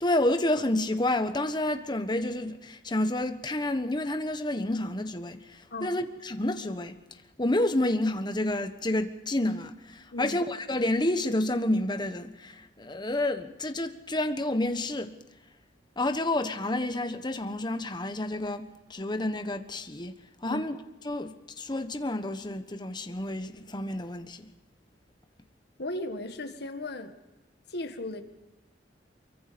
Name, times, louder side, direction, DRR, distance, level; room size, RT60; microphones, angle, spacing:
voice 1, 0.0-7.0 7.4-15.2 16.0-20.1 20.4-20.8 21.0-24.5, left 1 dB, 25° left, 1.3 m, -29 dB
voice 2, 25.8-27.1 27.7-28.2, left 1 dB, 65° left, 1.9 m, -36 dB
24.5 x 23.5 x 5.2 m
head